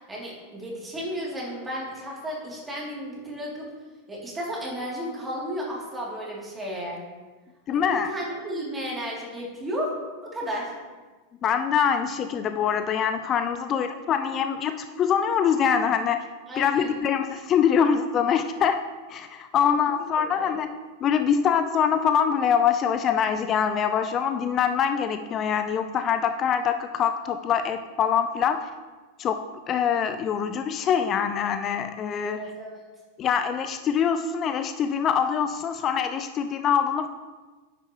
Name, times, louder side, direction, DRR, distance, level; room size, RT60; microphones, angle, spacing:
voice 1, 0.1-3.7 4.1-7.0 7.7-9.9 10.2-10.7 16.5-16.9 19.7-20.5 32.3-32.8, equal, 15° right, -4 dB, 2.9 m, -33 dB
voice 2, 7.7-8.1 11.4-16.2 16.6-18.8 19.1-20.7 21.0-28.7 29.2-32.4 33.2-37.1, left 7 dB, 30° left, 9 dB, 0.5 m, -24 dB
10.0 x 8.1 x 3.1 m, 1.3 s
figure-of-eight pair, 90°, 0 cm